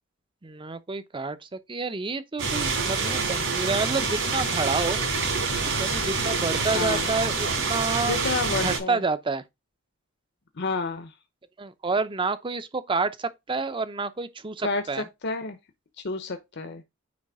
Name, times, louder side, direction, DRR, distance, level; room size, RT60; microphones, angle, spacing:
voice 1, 0.4-5.0 5.8-8.2 8.5-9.4 11.6-15.0, right 3 dB, 25° right, 0.7 m, -29 dB
sound 1, 2.4-8.8, right 4 dB, 70° right, 4.3 m, -26 dB
voice 2, 6.7-7.1 8.0-9.0 10.6-11.1 14.6-14.8 15.2-15.6 16.0-16.8, left 3 dB, 55° left, 0.9 m, -29 dB
9.5 x 3.2 x 4.8 m
head